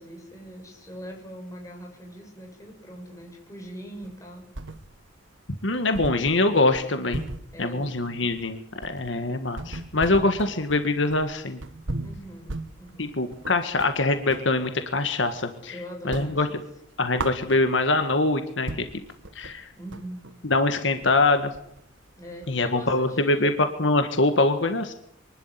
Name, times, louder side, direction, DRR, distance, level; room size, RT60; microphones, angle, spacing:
voice 1, 0.0-4.5 7.5-7.9 12.0-13.2 15.7-16.6 19.8-20.3 22.2-23.7, equal, 15° left, 1 dB, 6.8 m, -41 dB
sound 1, 4.0-5.2 5.5-5.6 5.9-14.5 14.9-15.7 16.0-18.0 18.4-18.5 18.7-22.8, right 2 dB, 75° right, 1.3 m, -37 dB
voice 2, 5.6-7.2 7.6-11.6 13.0-15.7 16.0-16.5 17.0-18.8 19.3-19.7 20.4-21.5 22.5-24.9, left 2 dB, 70° left, 8 dB, 1.7 m, -23 dB
24.5 x 12.0 x 9.8 m, 0.74 s
head